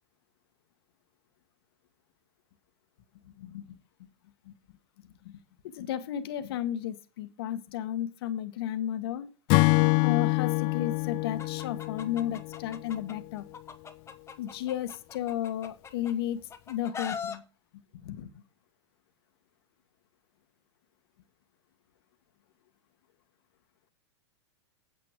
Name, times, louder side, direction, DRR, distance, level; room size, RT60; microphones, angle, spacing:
voice 1, 5.7-9.3 10.0-13.4 14.4-16.4 16.7-17.4 18.0-18.3, left 11 dB, 65° left, 10 dB, 1.2 m, -33 dB
Acoustic guitar / Strum, 9.5-12.9, left 27 dB, 45° left, 0.4 m, -26 dB
Chicken rooster, 11.4-13.1 13.5-16.1 16.5-17.4, left 6 dB, 20° left, 1.3 m, -40 dB
8.8 x 8.3 x 4.9 m, 0.33 s
hypercardioid pair, 100°, 14 cm